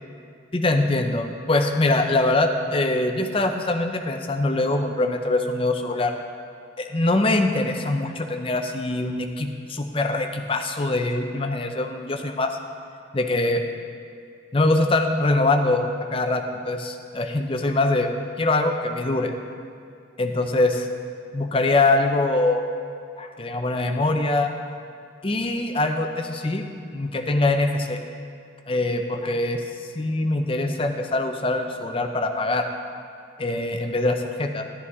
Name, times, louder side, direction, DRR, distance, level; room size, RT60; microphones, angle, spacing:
voice 1, 0.5-6.1 6.8-12.6 13.1-13.6 14.5-18.1 18.4-19.3 20.2-20.9 21.3-22.6 23.2-24.5 25.2-28.0 28.7-29.6 29.9-32.7 33.4-34.7, left 2 dB, 30° left, 5 dB, 0.6 m, -23 dB
11.0 x 11.0 x 3.6 m, 2.4 s
head